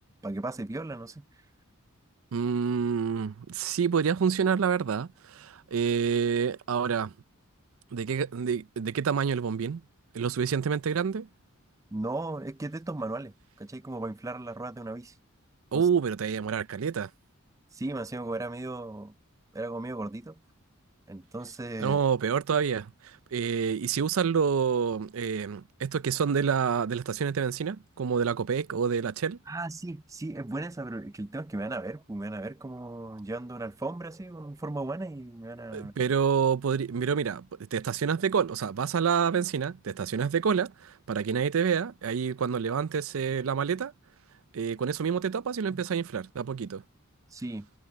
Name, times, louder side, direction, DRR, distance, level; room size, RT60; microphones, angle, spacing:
voice 1, 0.2-1.3 11.9-15.1 15.7-15.8 17.7-19.2 19.5-20.4 21.1-22.0 29.5-35.9 45.7-45.8 47.3-47.7, right 2 dB, 15° right, 0.4 m, -36 dB
voice 2, 2.3-7.1 7.9-9.8 10.1-11.3 15.7-17.1 21.8-29.4 35.7-37.4 37.7-43.9 44.5-46.8, right 6 dB, 70° right, 0.5 m, -28 dB
head